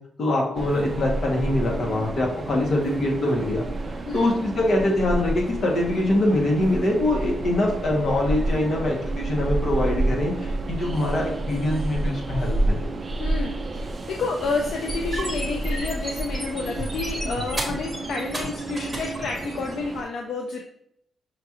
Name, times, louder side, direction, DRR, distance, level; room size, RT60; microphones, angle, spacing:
voice 1, 0.2-12.9, left 1 dB, 50° left, -1 dB, 1.1 m, -24 dB
Train, 0.6-20.0, right 2 dB, 35° right, 0.4 m, -30 dB
voice 2, 13.2-20.6, left 4 dB, 70° left, 1 dB, 0.4 m, -30 dB
sound 1, 14.7-19.7, right 1 dB, 10° right, 1.1 m, -32 dB
5.7 x 2.4 x 2.9 m, 0.71 s
cardioid pair, 120°, 0 cm